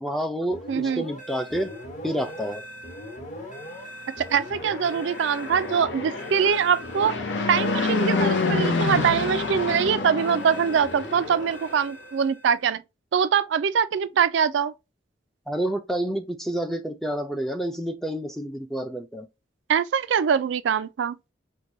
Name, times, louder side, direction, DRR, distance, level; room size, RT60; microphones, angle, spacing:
voice 1, 0.0-1.7 2.0-2.6 15.5-19.3, equal, ahead, 0.4 m, -29 dB
sound 1, 0.5-12.6, equal, 40° left, 1.0 m, -40 dB
voice 2, 0.7-1.1 4.2-7.1 7.5-12.8 13.1-14.7 19.7-21.2, right 7 dB, 80° right, 0.3 m, -23 dB
Fixed-wing aircraft airplane, 4.5-11.9, left 4 dB, 75° left, 0.7 m, -28 dB
4.5 x 2.2 x 2.6 m
head